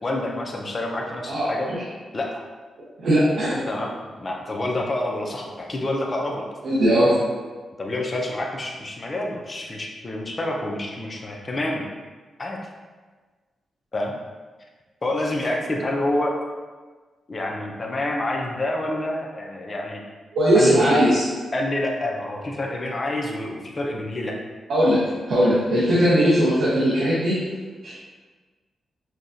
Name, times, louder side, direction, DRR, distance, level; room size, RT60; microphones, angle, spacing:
voice 1, 0.0-1.7 2.1-2.4 3.7-6.5 7.8-11.9 12.4-12.6 13.9-14.1 15.0-16.4 17.3-20.0 20.5-20.9 21.5-24.4, left 1 dB, 35° left, 0 dB, 0.6 m, -27 dB
voice 2, 3.0-3.6 6.6-7.1 20.3-21.2 24.7-25.0 25.3-27.4 27.8-28.0, equal, 80° right, -10 dB, 1.0 m, -19 dB
5.9 x 2.3 x 2.6 m, 1.4 s
cardioid pair, 90°, 0 cm